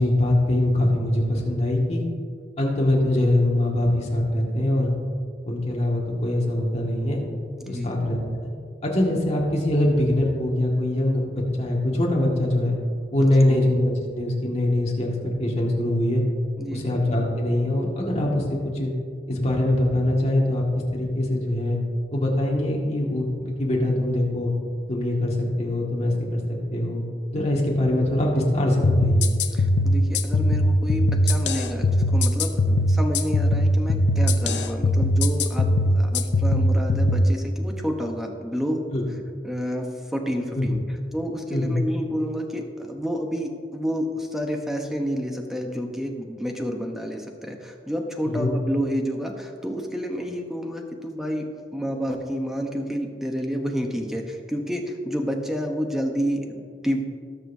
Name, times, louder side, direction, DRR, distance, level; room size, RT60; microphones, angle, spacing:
voice 1, 0.0-2.0 2.6-4.9 5.5-7.2 7.7-8.5 8.8-12.8 13.1-15.1 15.4-16.2 16.7-18.9 19.3-20.6 20.9-21.8 22.1-24.5 24.9-26.4 26.7-27.0 27.3-29.3 38.9-39.0 40.6-40.7 41.5-41.8 48.2-48.5, left 1 dB, 35° left, -3 dB, 1.9 m, -23 dB
voice 2, 7.6-7.9 13.2-13.6 16.6-16.8 29.5-38.8 39.4-40.8 41.1-51.5 51.7-57.0, equal, ahead, 2 dB, 0.9 m, -29 dB
sound 1, 28.8-37.2, left 1 dB, 75° left, 0.7 m, -21 dB
19.0 x 6.7 x 2.7 m, 2.1 s
head